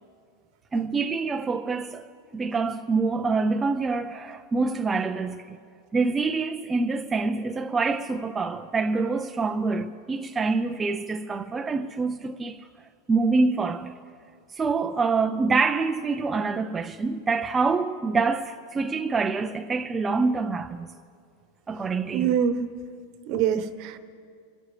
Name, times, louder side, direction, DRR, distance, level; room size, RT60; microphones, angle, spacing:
voice 1, 0.7-2.1 2.3-5.6 5.9-12.7 13.1-13.9 14.5-20.9 21.7-22.3, right 4 dB, 15° right, 0.4 m, -26 dB
voice 2, 22.1-22.7 23.3-24.0, right 8 dB, 50° right, 1.0 m, -24 dB
25.5 x 12.5 x 3.3 m
supercardioid pair, 130°, 0 cm